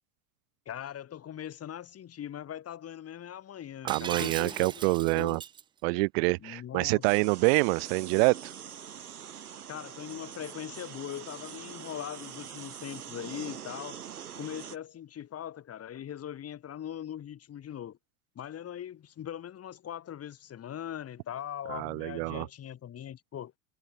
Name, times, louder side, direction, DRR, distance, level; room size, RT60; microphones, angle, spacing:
voice 1, 0.6-5.4 6.4-7.0 9.7-14.1 14.3-18.0 18.3-23.5, left 10 dB, 35° left, 6.8 m, -41 dB
voice 2, 3.8-5.4 5.8-8.5 21.7-22.5, right 32 dB, 50° right, 0.7 m, -26 dB
Shatter, 3.9-5.6, right 8 dB, 10° right, 0.4 m, -38 dB
sound 1, 7.0-14.8, right 8 dB, 85° right, 1.0 m, -44 dB
figure-of-eight pair, 80°, 43 cm